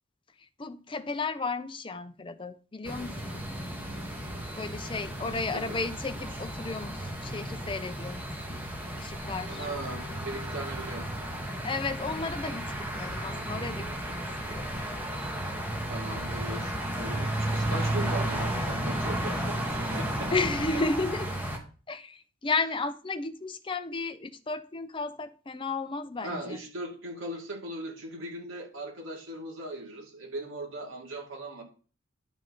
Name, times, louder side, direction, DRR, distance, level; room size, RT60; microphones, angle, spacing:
voice 1, 0.6-3.5 4.6-8.6 9.0-9.7 11.6-14.2 14.5-14.8 20.3-21.4 21.9-26.6, left 3 dB, 25° left, 0.6 m, -33 dB
sound 1, 2.8-21.6, right 1 dB, 10° right, 1.3 m, -33 dB
voice 2, 5.2-5.8 9.5-11.0 15.9-20.4 20.7-20.8 26.2-31.6, right 1 dB, 70° right, 2.6 m, -39 dB
11.0 x 5.9 x 3.8 m
head